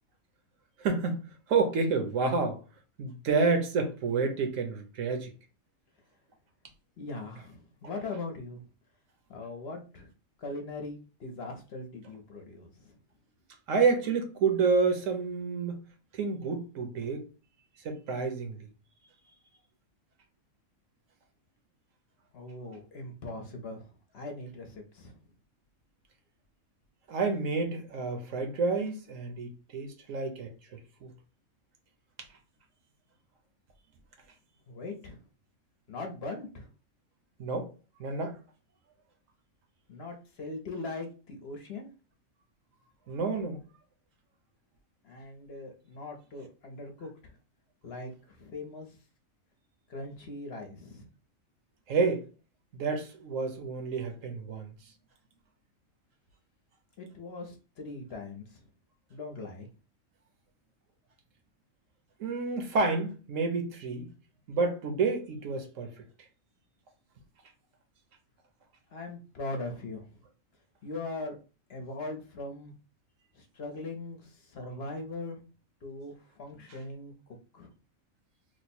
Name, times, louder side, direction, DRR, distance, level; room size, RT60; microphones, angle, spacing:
voice 1, 0.8-1.2 1.5-2.6 3.0-5.3 13.7-15.8 16.1-17.3 17.8-18.6 27.1-31.1 37.4-37.7 38.0-38.4 43.1-43.6 51.9-52.3 52.7-54.7 62.2-64.1 64.5-65.9, right 4 dB, 70° right, 1.1 m, -29 dB
voice 2, 7.0-8.6 9.3-10.1 10.4-13.0 22.3-25.1 34.7-35.2 35.9-36.7 39.9-41.9 45.0-47.4 47.8-49.0 49.9-51.0 57.0-58.6 59.1-59.7 68.9-70.2 70.8-71.4 71.7-72.7 73.3-75.4 75.8-77.1 77.5-77.7, left 2 dB, 55° left, 0.8 m, -40 dB
3.1 x 2.1 x 4.2 m
omnidirectional pair, 1.5 m